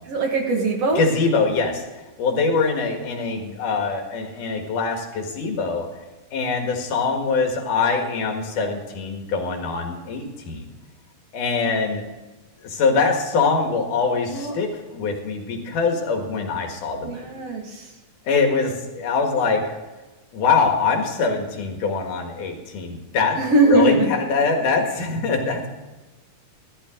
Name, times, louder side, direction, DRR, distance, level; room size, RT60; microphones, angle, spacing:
voice 1, 0.1-1.0 14.3-14.5 17.0-17.9 23.4-24.1, right 2 dB, 55° right, 2 dB, 2.6 m, -20 dB
voice 2, 1.0-1.8 2.2-5.9 6.3-10.7 11.3-12.1 12.6-17.3 18.2-19.8 20.3-23.4 23.6-25.7, left 4 dB, 75° left, 3 dB, 3.2 m, -23 dB
15.0 x 12.0 x 3.8 m, 1.2 s
omnidirectional pair, 3.8 m